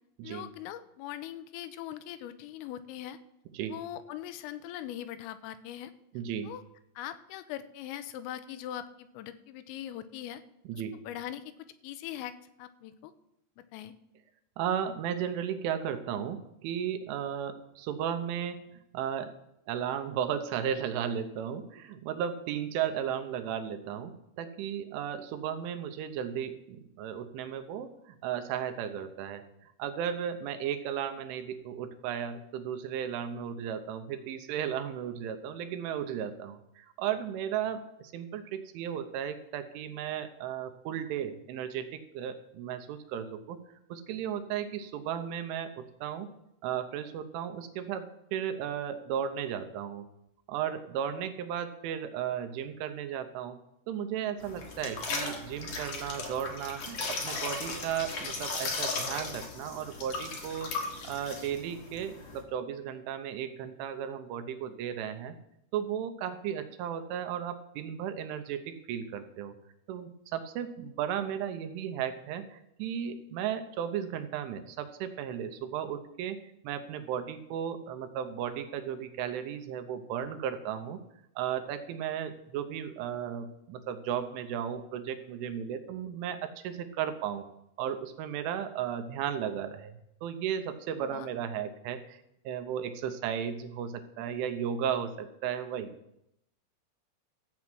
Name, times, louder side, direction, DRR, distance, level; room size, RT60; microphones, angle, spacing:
voice 1, 0.2-3.2 3.7-5.9 6.4-6.6 7.0-10.4 11.0-11.4 11.8-12.3 12.6-13.1 13.7-13.9 91.0-91.3, left 11 dB, 85° left, 12 dB, 3.3 m, -41 dB
voice 2, 6.1-6.5 10.7-11.0 14.6-18.6 18.9-19.3 19.7-29.4 29.8-43.6 43.9-46.3 46.6-50.1 50.5-53.6 53.9-60.8 61.0-65.4 65.7-69.5 69.9-81.0 81.4-87.4 87.8-92.2 92.5-96.0, right 9 dB, 80° right, 8 dB, 3.1 m, -35 dB
sound 1, 54.4-62.4, left 3 dB, 60° left, 1.7 m, -37 dB
14.0 x 7.8 x 6.0 m, 0.80 s
omnidirectional pair, 5.9 m